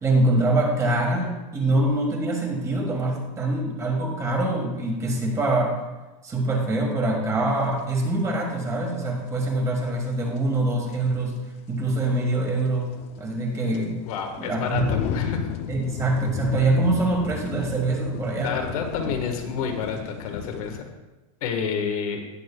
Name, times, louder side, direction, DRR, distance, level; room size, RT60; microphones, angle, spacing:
voice 1, 0.0-5.8 6.2-11.3 11.7-12.9 13.2-14.0 14.4-14.9 15.7-18.6, right 2 dB, 15° right, 1 dB, 1.5 m, -24 dB
sound 1, 7.8-7.9 10.4-10.5 10.9-11.0 12.6-20.8, left 8 dB, 35° left, 0.5 m, -33 dB
voice 2, 14.0-15.5 18.4-20.9 21.4-22.2, left 6 dB, 80° left, 3 dB, 1.4 m, -29 dB
17.0 x 6.4 x 2.3 m, 1.1 s
supercardioid pair, 160°, 18 cm